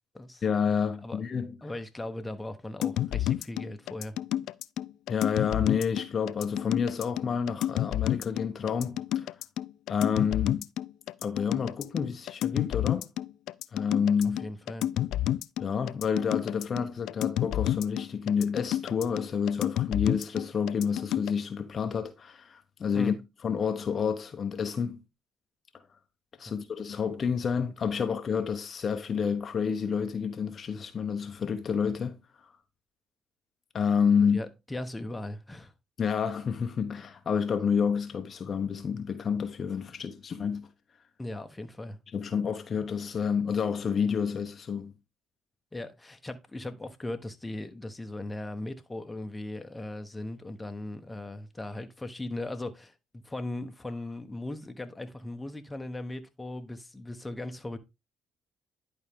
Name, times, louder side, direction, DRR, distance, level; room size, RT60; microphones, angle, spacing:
voice 1, 0.4-1.5 5.1-9.3 9.9-10.7 11.2-13.1 13.7-14.4 15.6-23.2 23.4-25.0 26.4-32.2 33.7-34.4 36.0-40.7 42.1-44.9, left 6 dB, 50° left, 1.0 m, -29 dB
voice 2, 1.6-4.2 14.2-14.9 22.9-23.2 34.3-35.7 41.2-42.0 45.7-57.8, left 1 dB, 15° left, 1.2 m, -38 dB
sound 1, 2.8-21.3, left 12 dB, 75° left, 0.3 m, -30 dB
11.0 x 4.4 x 3.7 m
supercardioid pair, 70°, 0 cm